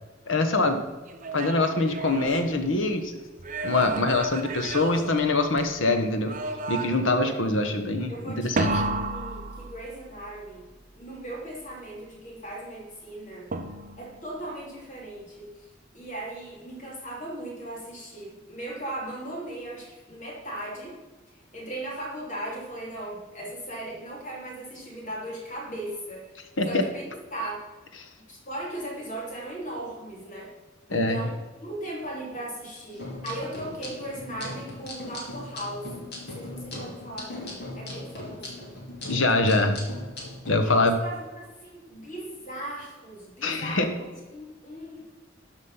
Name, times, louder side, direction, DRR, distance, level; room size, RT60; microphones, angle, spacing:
voice 1, 0.3-0.8 1.3-3.2 3.6-6.3 6.7-8.8 26.6-26.8 30.9-31.2 39.1-39.8 40.5-40.9 43.4-43.9, left 2 dB, 75° left, 6 dB, 1.2 m, -24 dB
sound 1, 1.1-3.0 3.4-5.8 6.3-7.2 8.6-10.2 13.5-14.2, right 3 dB, 40° right, 0.8 m, -32 dB
voice 2, 3.6-4.2 7.2-7.7 8.1-10.7 10.9-13.5 14.0-21.0 21.3-27.7 28.2-30.5 30.9-38.8 40.6-45.1, right 1 dB, 40° left, -2 dB, 3.1 m, -38 dB
sound 2, 32.9-40.5, left 1 dB, 55° left, 2.8 m, -39 dB
12.5 x 5.2 x 5.6 m, 1.2 s
head